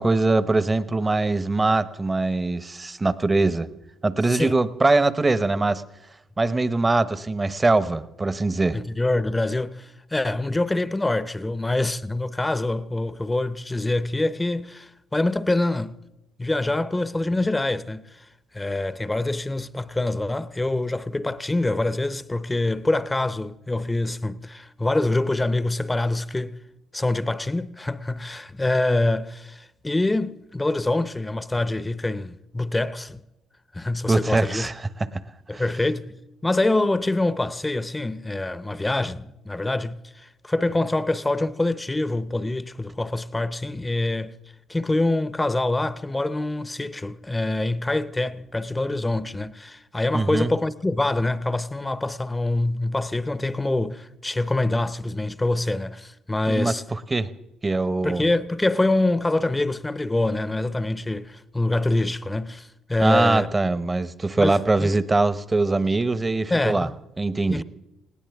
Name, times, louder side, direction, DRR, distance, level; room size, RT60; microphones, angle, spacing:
voice 1, 0.0-3.7 4.0-5.8 6.4-8.8 34.1-35.2 35.5-35.6 50.1-50.5 56.5-57.3 57.6-58.3 63.0-66.9 67.2-67.6, right 3 dB, 25° right, 0.8 m, -22 dB
voice 2, 8.7-15.9 16.4-18.1 18.5-26.6 26.9-33.2 33.7-34.7 35.5-44.4 44.7-56.8 58.0-63.5 64.4-64.9 66.5-67.0 67.5-67.6, left 2 dB, 15° left, 0.7 m, -25 dB
19.5 x 17.5 x 3.5 m
supercardioid pair, 60°, 0 cm